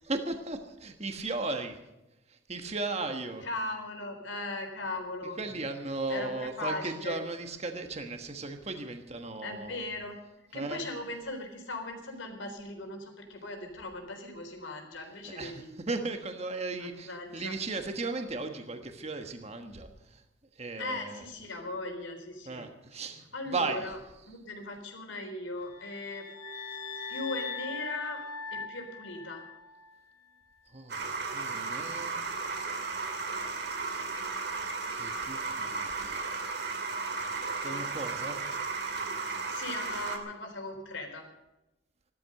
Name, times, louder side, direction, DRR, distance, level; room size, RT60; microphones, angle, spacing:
voice 1, 0.0-1.8 2.3-3.5 5.4-9.8 10.5-10.8 15.3-20.2 20.6-21.2 22.5-23.9 30.7-32.2 34.9-36.4 37.6-38.4, right 3 dB, 35° right, 6 dB, 1.4 m, -36 dB
voice 2, 3.4-5.4 6.1-7.2 9.4-10.2 10.5-15.7 16.8-17.6 20.8-22.7 22.9-24.0 24.3-26.3 27.1-28.2 28.5-29.5 37.6-37.8 39.5-41.3, left 2 dB, 85° left, 3 dB, 4.0 m, -38 dB
sound 1, 25.7-29.9, left 4 dB, 20° left, 1.8 m, -40 dB
sound 2, 30.9-40.2, right 4 dB, 60° right, 2.5 m, -34 dB
16.0 x 12.5 x 6.6 m, 0.96 s
head